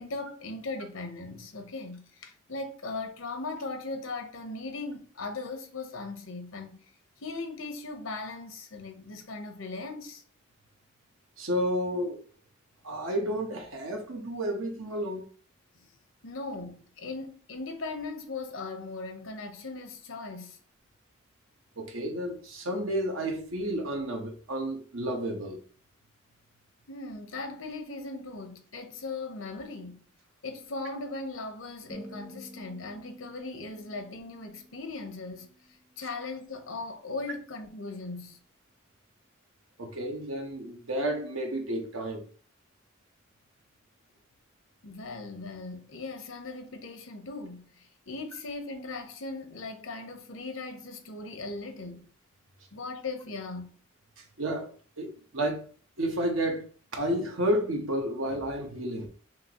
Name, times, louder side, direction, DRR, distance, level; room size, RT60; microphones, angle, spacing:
voice 1, 0.0-6.9 7.2-10.2 15.7-16.0 16.2-20.6 26.9-30.0 30.4-35.5 36.0-38.4 44.8-52.1 52.7-53.8, left 3 dB, 85° left, 0.9 m, -38 dB
voice 2, 11.4-12.2 12.8-15.2 21.8-25.6 39.8-42.3 54.4-55.6 56.0-59.1, equal, 85° right, 1.1 m, -31 dB
sound 1, 31.9-36.2, equal, 30° right, 1.5 m, -50 dB
5.9 x 2.8 x 3.0 m
head